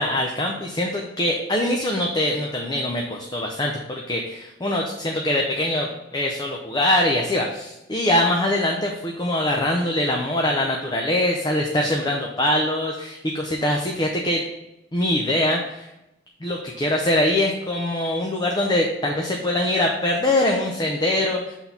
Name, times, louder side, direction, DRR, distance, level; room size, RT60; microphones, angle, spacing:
voice 1, 0.0-14.4 14.9-15.9 16.4-21.6, left 1 dB, 20° left, 0 dB, 0.6 m, -23 dB
6.1 x 4.0 x 5.9 m, 0.90 s
head